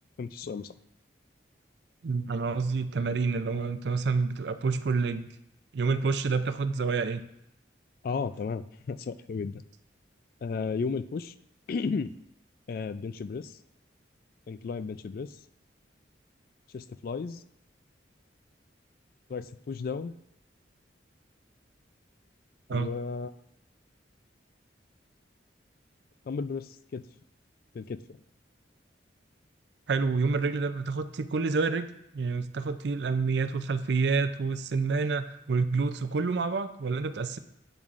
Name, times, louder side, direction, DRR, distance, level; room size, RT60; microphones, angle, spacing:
voice 1, 0.2-0.7 8.0-9.6 10.4-11.3 11.7-12.1 12.7-13.6 14.5-15.4 16.7-17.4 19.3-20.1 22.7-23.3 26.3-27.0 27.7-28.0, left 5 dB, 50° left, 13 dB, 0.3 m, -34 dB
voice 2, 2.0-5.3 5.7-7.2 22.7-22.9 29.9-31.9 32.1-37.4, right 4 dB, 65° right, 11 dB, 0.4 m, -28 dB
8.1 x 7.1 x 2.5 m, 0.80 s
head